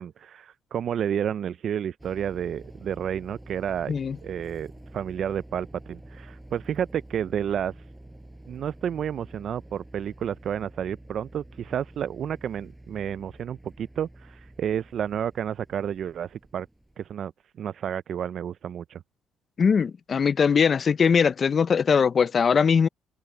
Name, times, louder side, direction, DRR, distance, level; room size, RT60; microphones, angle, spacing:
voice 1, 0.0-3.9 4.2-7.8 8.5-16.7 17.0-17.3 17.6-19.0, right 9 dB, 55° right, 0.3 m, -31 dB
sound 1, 2.0-17.1, right 1 dB, 10° right, 6.0 m, -48 dB
voice 2, 19.6-22.9, left 6 dB, 40° left, 0.5 m, -21 dB
cardioid pair, 105°, 0 cm